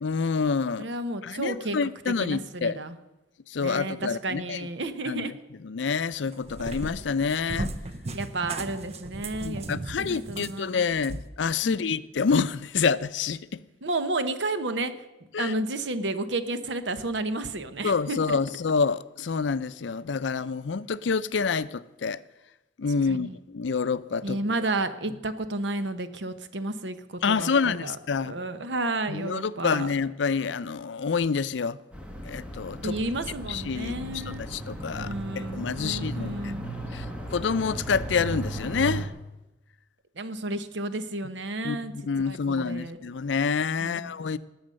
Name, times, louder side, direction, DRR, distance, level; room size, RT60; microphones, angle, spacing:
voice 1, 0.0-0.9 1.2-2.8 3.5-4.6 5.1-5.3 5.6-7.7 9.4-13.6 15.3-15.5 17.8-22.2 22.8-24.4 27.2-28.3 29.1-31.8 32.3-33.0 33.5-35.1 35.4-36.5 36.9-37.1 37.3-39.1 41.6-44.4, left 5 dB, 80° left, 0.5 m, -27 dB
voice 2, 0.8-2.9 3.6-5.3 8.1-10.9 11.6-12.0 13.8-15.0 15.4-18.4 23.1-23.4 24.2-28.0 28.3-29.9 32.8-34.4 35.0-36.6 40.2-41.9 42.3-43.0 43.8-44.2, right 2 dB, 75° right, 1.0 m, -32 dB
Cat, 6.1-11.3, right 2 dB, 35° right, 0.7 m, -36 dB
sound 1, 31.9-39.1, right 2 dB, 5° right, 1.6 m, -36 dB
19.0 x 7.0 x 6.4 m
head